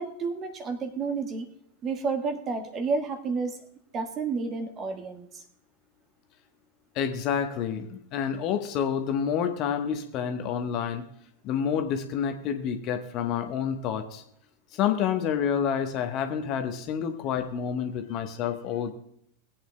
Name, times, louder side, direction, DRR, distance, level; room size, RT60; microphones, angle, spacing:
voice 1, 0.0-1.5 1.8-3.6 3.9-5.4, right 4 dB, 30° right, 7 dB, 1.5 m, -30 dB
voice 2, 6.9-11.0 11.4-14.2 14.7-18.9, left 8 dB, 40° left, 6 dB, 1.1 m, -28 dB
20.0 x 8.8 x 2.3 m, 0.74 s
figure-of-eight pair, 90°, 0 cm